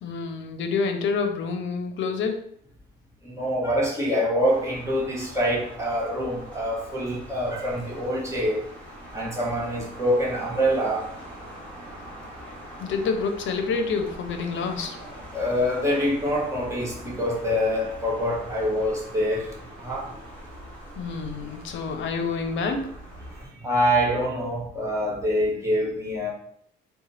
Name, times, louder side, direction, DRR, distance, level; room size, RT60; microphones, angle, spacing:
voice 1, 0.0-2.4 12.8-15.0 21.0-22.9, left 5 dB, 70° left, 6 dB, 0.7 m, -28 dB
voice 2, 3.2-8.6 9.1-11.1 15.3-20.1 23.4-26.3, equal, 15° right, -4 dB, 1.4 m, -25 dB
sound 1, 4.5-23.5, equal, 5° left, 1.5 m, -43 dB
4.0 x 2.3 x 4.1 m, 0.66 s
cardioid pair, 90°, 20 cm